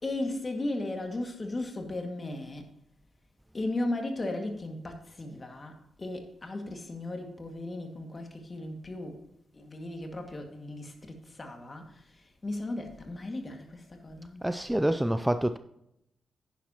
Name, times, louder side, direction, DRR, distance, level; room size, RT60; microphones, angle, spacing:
voice 1, 0.0-2.7 3.5-9.2 9.5-14.5, left 2 dB, 30° left, 2.0 m, -36 dB
voice 2, 14.4-15.6, right 1 dB, 5° right, 0.4 m, -27 dB
10.5 x 10.0 x 2.9 m
cardioid pair, 85°, 0 cm